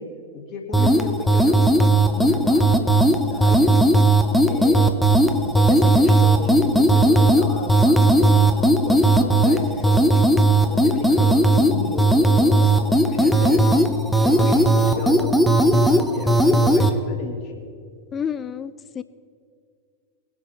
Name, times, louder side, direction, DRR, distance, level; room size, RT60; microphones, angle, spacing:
voice 1, 0.0-3.8 4.4-10.2 10.6-13.8 14.2-17.5, left 4 dB, 40° left, 1 dB, 2.1 m, -33 dB
sound 1, 0.7-16.9, right 1 dB, ahead, 0.8 m, -17 dB
voice 2, 0.8-1.2 11.1-11.3 18.1-19.0, left 8 dB, 25° left, 14 dB, 0.3 m, -30 dB
20.5 x 7.3 x 4.3 m, 2.2 s
figure-of-eight pair, 90°, 0 cm